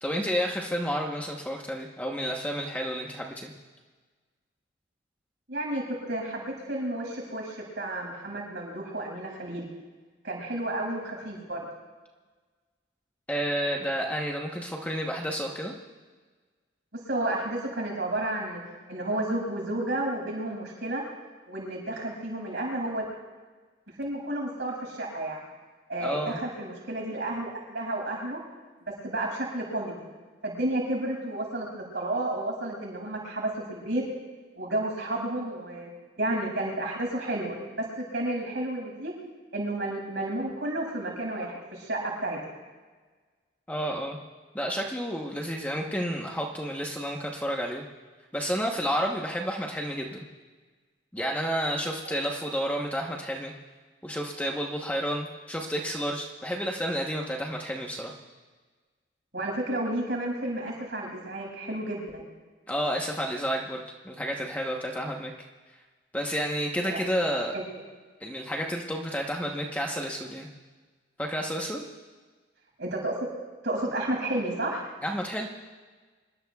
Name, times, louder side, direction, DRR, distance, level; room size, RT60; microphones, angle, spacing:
voice 1, 0.0-3.5 13.3-15.7 26.0-26.4 43.7-44.2 44.5-47.8 48.3-50.2 51.1-53.5 54.0-58.1 62.7-65.3 66.1-67.5 68.2-70.5 71.2-71.8 75.0-75.5, equal, 10° left, -1 dB, 1.0 m, -30 dB
voice 2, 5.5-9.7 10.2-11.7 16.9-18.6 18.9-21.0 21.5-23.1 24.0-25.4 25.9-28.4 29.0-30.0 30.4-34.0 34.6-35.9 36.2-39.1 39.5-42.4 52.0-52.2 59.3-62.3 66.8-67.0 67.5-67.6 72.8-73.1 73.6-74.8, right 1 dB, 55° right, -2 dB, 6.4 m, -31 dB
26.0 x 20.5 x 2.4 m, 1.4 s
head